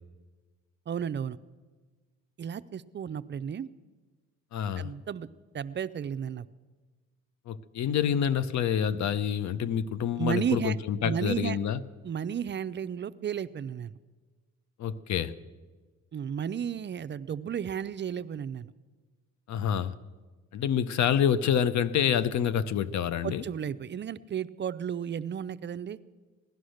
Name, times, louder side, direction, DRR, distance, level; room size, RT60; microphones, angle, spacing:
voice 1, 0.9-1.4 2.4-3.7 4.8-5.3 5.5-6.5 10.2-10.8 11.0-11.6 12.0-13.9 16.1-18.7 23.2-26.0, right 8 dB, 40° right, 14 dB, 0.5 m, -33 dB
voice 2, 4.5-4.9 7.5-11.8 14.8-15.3 19.5-19.9 20.5-23.4, left 8 dB, 65° left, 15 dB, 0.7 m, -27 dB
16.5 x 11.5 x 6.4 m, 1.4 s
cardioid pair, 90°, 30 cm